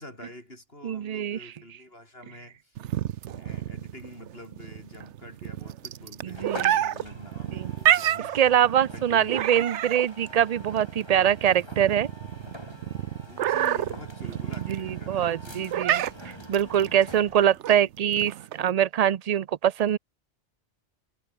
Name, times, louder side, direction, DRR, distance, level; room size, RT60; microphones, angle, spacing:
voice 1, 0.0-2.8 3.2-8.3 8.9-9.5 13.2-15.8, left 1 dB, 60° left, 7.9 m, -46 dB
voice 2, 0.8-1.4 6.2-6.7 7.5-7.7 8.3-12.1 14.7-20.0, right 10 dB, 50° right, 0.5 m, -24 dB
sound 1, 2.8-18.7, right 11 dB, 80° right, 1.0 m, -29 dB
sound 2, 6.3-17.6, left 1 dB, 20° left, 5.0 m, -46 dB
omnidirectional pair, 1.2 m